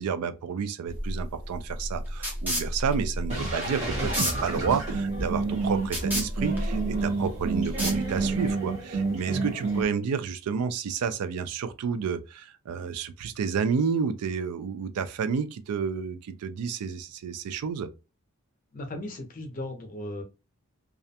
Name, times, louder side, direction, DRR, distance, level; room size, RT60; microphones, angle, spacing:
voice 1, 0.0-17.9, right 6 dB, 90° right, 0.3 m, -30 dB
sound 1, 0.9-8.5, equal, 10° right, 0.6 m, -32 dB
sound 2, 3.3-9.8, right 3 dB, 30° right, 1.0 m, -29 dB
voice 2, 18.7-20.2, left 1 dB, 35° left, 0.6 m, -36 dB
2.4 x 2.1 x 2.6 m
head